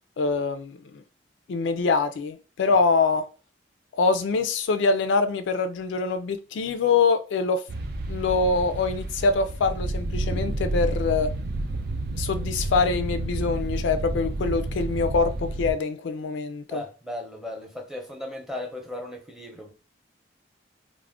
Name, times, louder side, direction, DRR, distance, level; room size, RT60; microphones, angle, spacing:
voice 1, 0.2-1.0 1.5-3.2 4.0-7.6 8.1-11.3 12.1-16.8, left 4 dB, 75° left, 0.3 m, -24 dB
sound 1, 7.7-15.7, right 2 dB, 55° right, 0.4 m, -30 dB
voice 2, 16.7-19.7, left 1 dB, 5° right, 0.6 m, -36 dB
2.4 x 2.1 x 3.4 m
head